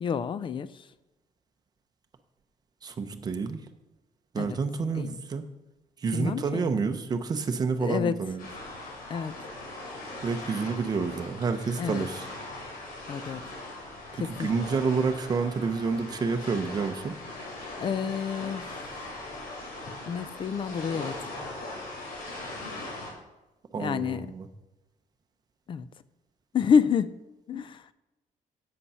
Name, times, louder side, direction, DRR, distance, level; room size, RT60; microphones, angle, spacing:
voice 1, 0.0-0.9 4.4-4.6 5.0-5.2 6.1-6.7 7.8-8.2 9.1-9.4 11.8-12.1 13.1-13.4 14.2-14.5 17.8-19.0 20.1-21.2 23.8-24.3 25.7-25.9 26.5-27.2 27.5-27.8, left 6 dB, 35° left, 15 dB, 0.4 m, -28 dB
voice 2, 2.8-3.6 4.3-5.4 6.0-8.4 10.2-12.3 14.1-17.1 23.7-24.5, right 4 dB, 25° right, 7 dB, 0.7 m, -29 dB
sound 1, 8.4-23.1, left 2 dB, 90° left, 4.1 m, -40 dB
8.5 x 8.3 x 5.6 m, 1.0 s
cardioid pair, 175°, 15 cm